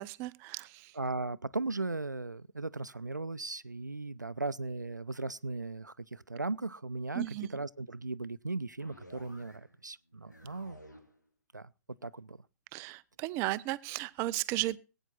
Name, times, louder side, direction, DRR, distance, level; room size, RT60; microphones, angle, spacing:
voice 1, 0.0-1.0 7.1-7.5 12.7-14.8, right 17 dB, 25° right, 0.6 m, -35 dB
voice 2, 1.0-7.3 7.5-10.8 11.5-11.7 12.0-12.4, right 3 dB, 85° right, 0.6 m, -37 dB
sound 1, 8.8-9.8 10.1-11.2, equal, 85° left, 2.7 m, -54 dB
19.0 x 9.0 x 4.2 m
figure-of-eight pair, 120°, 9 cm